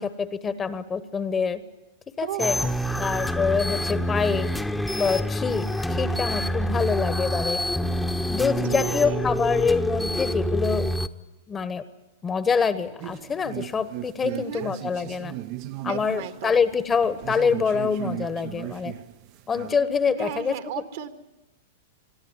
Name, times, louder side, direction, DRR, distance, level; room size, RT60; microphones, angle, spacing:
voice 1, 0.0-1.6 2.2-2.6 3.0-4.5 4.9-7.6 8.3-10.9 11.5-11.8 12.2-15.3 15.8-18.9 19.5-20.5, left 5 dB, 20° left, 13 dB, 1.2 m, -25 dB
voice 2, 2.2-2.8 8.5-9.3 14.3-14.7 15.9-16.6 20.2-21.1, right 9 dB, 60° right, 8 dB, 1.8 m, -34 dB
sound 1, 2.4-11.1, equal, 5° left, 1.0 m, -26 dB
sound 2, 13.0-19.8, right 15 dB, 45° right, 0.7 m, -37 dB
22.0 x 13.0 x 9.7 m, 1.0 s
hypercardioid pair, 105°, 0 cm